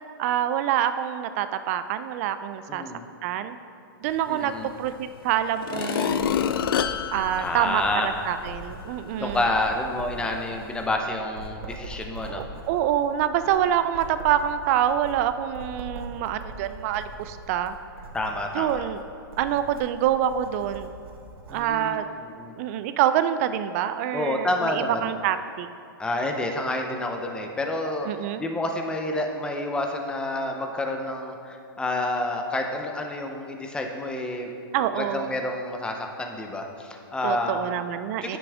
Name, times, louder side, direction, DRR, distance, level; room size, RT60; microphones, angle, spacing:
voice 1, 0.2-2.8 3.2-3.6 4.0-6.3 7.1-9.4 12.3-17.8 18.5-19.0 19.4-20.9 21.5-22.0 22.6-25.7 28.1-28.4 34.7-35.3 37.2-38.4, right 10 dB, 40° right, 11 dB, 0.3 m, -26 dB
voice 2, 2.7-3.0 4.3-4.7 7.4-8.1 9.2-12.4 18.1-18.8 21.5-22.5 24.1-25.1 26.0-28.1 28.4-34.5 34.9-37.8 38.2-38.4, left 2 dB, 5° left, 3 dB, 0.6 m, -29 dB
sound 1, 4.8-4.9 5.5-8.4 8.9-9.0, left 8 dB, 70° left, 0.4 m, -28 dB
Writing, 6.1-21.7, right 2 dB, 80° right, 1.2 m, -42 dB
9.7 x 6.1 x 3.4 m, 2.4 s
hypercardioid pair, 140°, 12 cm